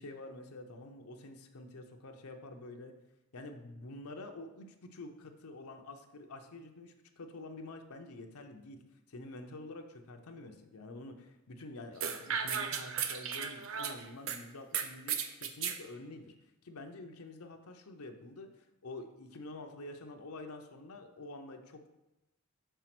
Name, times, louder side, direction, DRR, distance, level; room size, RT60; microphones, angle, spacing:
voice 1, 0.0-2.9 3.3-8.8 9.1-16.3 16.6-21.9, left 2 dB, 85° left, 4 dB, 0.7 m, -48 dB
sound 1, 12.0-14.4 14.7-15.8, right 7 dB, 65° right, 0.5 m, -35 dB
4.9 x 4.5 x 6.0 m, 0.96 s
head